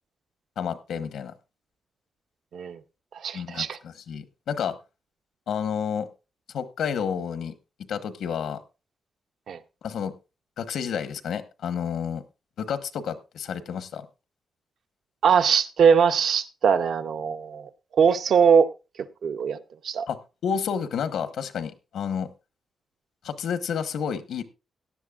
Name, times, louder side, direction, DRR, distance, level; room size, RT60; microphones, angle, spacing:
voice 1, 0.6-1.3 3.3-4.7 5.5-6.1 6.5-7.5 7.9-8.6 9.8-10.1 10.6-12.2 12.6-14.1 20.1-20.2 20.4-22.3 23.2-24.4, left 7 dB, 85° left, 1.1 m, -30 dB
voice 2, 3.1-3.8 9.5-9.6 15.2-18.7 19.2-19.6 19.8-20.1, right 6 dB, 60° right, 0.7 m, -21 dB
17.0 x 11.0 x 2.4 m
wide cardioid pair, 180°, 0 cm